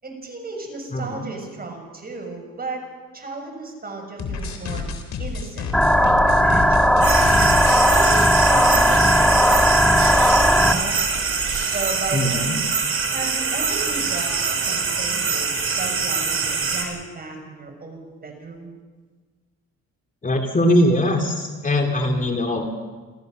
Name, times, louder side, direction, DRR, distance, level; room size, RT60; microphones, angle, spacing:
voice 1, 0.0-2.9 3.1-4.8 5.2-7.1 7.7-8.2 8.4-11.0 11.7-12.5 13.1-18.7, right 3 dB, 30° right, 2 dB, 6.6 m, -34 dB
voice 2, 0.9-1.3 8.5-8.8 12.1-12.6 20.2-22.7, left 1 dB, 25° left, 3 dB, 2.6 m, -21 dB
sound 1, 4.2-7.8 8.1-8.7 9.1-9.2 9.4-9.6 10.0-11.7, left 4 dB, 65° left, 3.6 m, -31 dB
sound 2, 5.7-10.7, equal, 5° left, 1.8 m, -16 dB
sound 3, 7.0-16.8, right 5 dB, 45° right, 4.7 m, -24 dB
29.0 x 14.5 x 6.6 m, 1.4 s
cardioid pair, 85°, 29 cm